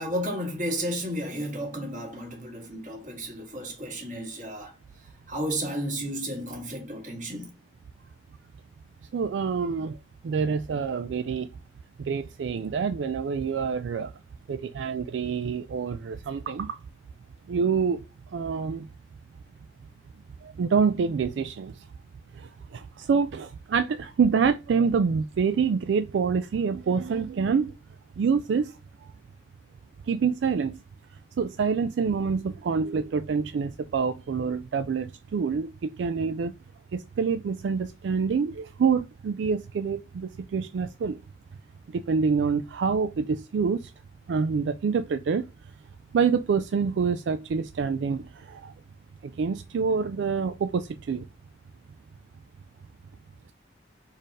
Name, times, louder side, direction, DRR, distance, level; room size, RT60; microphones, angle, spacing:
voice 1, 0.0-4.7 5.3-7.5, equal, 45° right, 1.8 m, -32 dB
voice 2, 9.1-10.0 10.2-11.5 12.0-14.1 14.5-16.8 17.5-18.0 18.3-18.9 20.4-21.7 22.4-27.7 28.2-28.7 30.1-30.8 31.4-36.5 36.9-41.2 41.9-43.9 44.3-45.4 46.1-48.7 49.2-51.3, right 5 dB, 80° right, 0.3 m, -26 dB
4.4 x 3.3 x 3.6 m
head